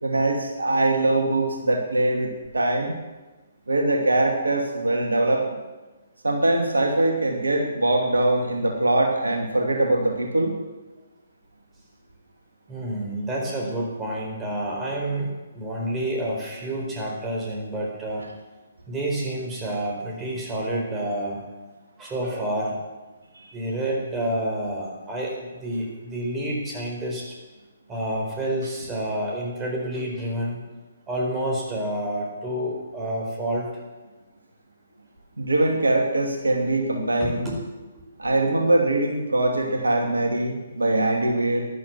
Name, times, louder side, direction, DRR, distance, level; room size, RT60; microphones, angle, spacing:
voice 1, 0.0-2.9 3.7-5.4 6.2-10.5 35.4-37.5 38.2-41.7, right 2 dB, 75° right, 2 dB, 2.6 m, -22 dB
voice 2, 12.7-18.2 18.9-21.4 22.0-22.8 23.5-27.3 27.9-30.6 31.1-33.7 37.2-37.6, right 1 dB, 15° right, -1 dB, 4.4 m, -29 dB
14.0 x 11.5 x 7.5 m, 1.2 s
figure-of-eight pair, 135°, 0 cm